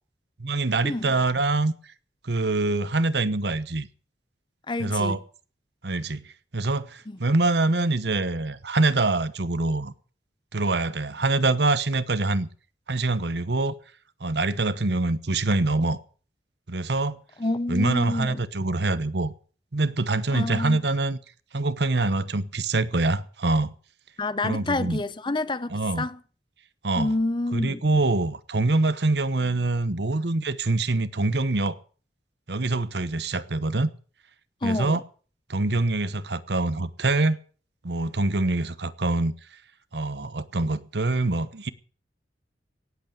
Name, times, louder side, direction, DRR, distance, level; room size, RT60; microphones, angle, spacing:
voice 1, 0.4-1.7 2.2-3.9 4.8-5.2 5.8-9.9 10.5-12.5 12.9-13.7 14.2-16.0 16.7-17.2 17.7-19.3 19.7-21.2 21.5-23.7 24.4-25.0 25.7-26.1 26.8-27.1 27.5-31.8 32.5-33.9 34.6-35.0 35.5-37.4 37.8-39.3 39.9-41.7, right 2 dB, 65° right, 1.0 m, -25 dB
voice 2, 4.7-5.2 7.1-7.2 17.4-18.4 20.3-20.8 24.2-26.2 27.0-27.8 34.6-35.0, left 2 dB, 25° left, 0.8 m, -28 dB
18.0 x 8.3 x 8.0 m
head